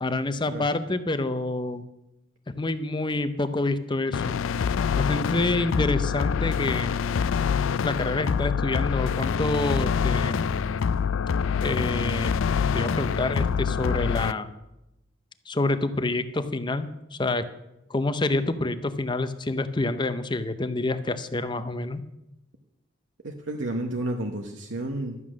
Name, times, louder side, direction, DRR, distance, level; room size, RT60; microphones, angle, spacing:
voice 1, 0.0-1.8 2.5-4.4 5.0-6.9 7.8-10.4 11.6-12.3 12.7-14.5 15.5-17.4 17.9-22.0, left 2 dB, 25° left, 11 dB, 0.6 m, -27 dB
sound 1, 4.1-14.3, left 6 dB, 85° left, 0.4 m, -25 dB
voice 2, 23.2-25.2, right 1 dB, 70° right, 2 dB, 1.0 m, -31 dB
12.5 x 8.3 x 6.2 m, 0.91 s
head